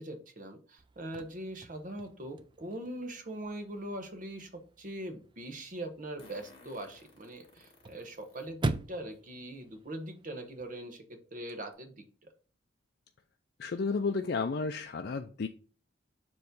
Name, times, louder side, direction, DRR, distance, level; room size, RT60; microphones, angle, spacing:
voice 1, 0.0-12.3, right 1 dB, 45° right, 6 dB, 1.1 m, -42 dB
Chirp tweet / Car / Slam, 0.8-10.8, right 2 dB, 25° right, 0.4 m, -43 dB
Fart, 3.4-3.5 6.2-8.5 9.1-9.2 10.5-10.6 11.0-11.1 11.5-11.7, left 2 dB, 30° left, 1.9 m, -57 dB
voice 2, 13.6-15.5, left 4 dB, 55° left, 6 dB, 0.4 m, -32 dB
7.0 x 3.1 x 5.1 m, 0.38 s
head